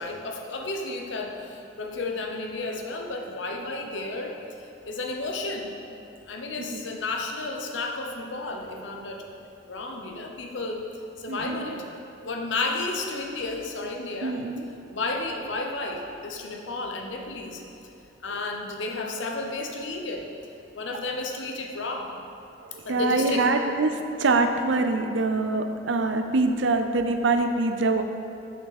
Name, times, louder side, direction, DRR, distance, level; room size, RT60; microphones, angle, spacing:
voice 1, 0.0-5.8 6.3-9.2 9.7-10.9 11.2-11.8 12.2-14.4 14.9-17.6 18.2-20.3 20.7-22.1 22.8-23.6, left 3 dB, 75° left, 2 dB, 0.8 m, -32 dB
voice 2, 11.3-11.8 14.2-14.7 22.6-28.0, right 3 dB, 75° right, 6 dB, 0.5 m, -24 dB
6.9 x 6.3 x 4.1 m, 2.6 s
head